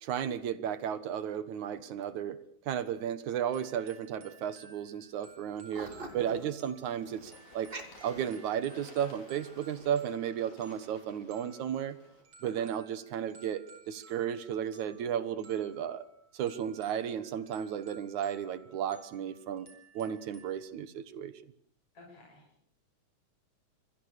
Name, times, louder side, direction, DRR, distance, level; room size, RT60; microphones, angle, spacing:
voice 1, 0.0-2.4 2.7-7.7 8.0-12.0 12.4-16.1 16.3-19.7 19.9-21.3, right 9 dB, 75° right, 14 dB, 2.8 m, -34 dB
sound 1, 3.5-20.6, right 4 dB, 50° right, 6.4 m, -58 dB
sound 2, 4.7-4.9 5.2-8.9 9.4-9.9, right 2 dB, 20° right, 2.2 m, -46 dB
Bird / Water, 5.5-12.2, left 3 dB, 65° left, 6.8 m, -57 dB
voice 2, 5.7-6.2 12.4-12.7 21.9-22.4, left 2 dB, 45° left, -2 dB, 7.6 m, -53 dB
26.0 x 22.0 x 6.6 m, 0.64 s
omnidirectional pair, 3.5 m